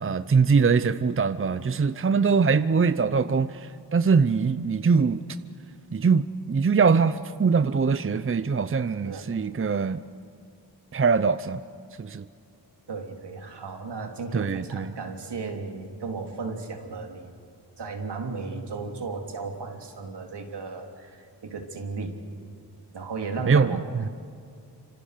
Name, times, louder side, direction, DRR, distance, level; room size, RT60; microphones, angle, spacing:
voice 1, 0.0-5.2 5.9-10.0 10.9-11.6 12.0-12.3 14.3-14.9 23.4-24.1, right 5 dB, 30° right, 13 dB, 0.8 m, -22 dB
voice 2, 12.9-17.3 17.8-22.2 22.9-23.9, right 4 dB, 70° right, 3 dB, 3.4 m, -35 dB
28.0 x 26.0 x 6.7 m, 2.3 s
cardioid pair, 65°, 42 cm